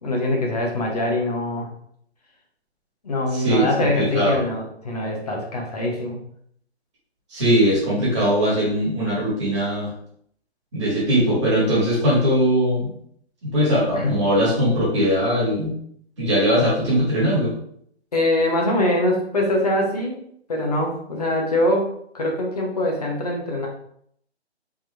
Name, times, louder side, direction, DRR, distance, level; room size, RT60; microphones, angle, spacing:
voice 1, 0.0-1.7 3.0-6.2 13.9-14.2 18.1-20.2 20.5-23.7, left 1 dB, 35° left, 0 dB, 0.8 m, -23 dB
voice 2, 3.3-3.7 3.9-4.4 7.3-9.9 10.7-12.9 13.4-15.7 16.2-17.5, equal, 25° right, -7 dB, 1.6 m, -20 dB
3.6 x 3.0 x 3.3 m, 0.68 s
hypercardioid pair, 160°, 34 cm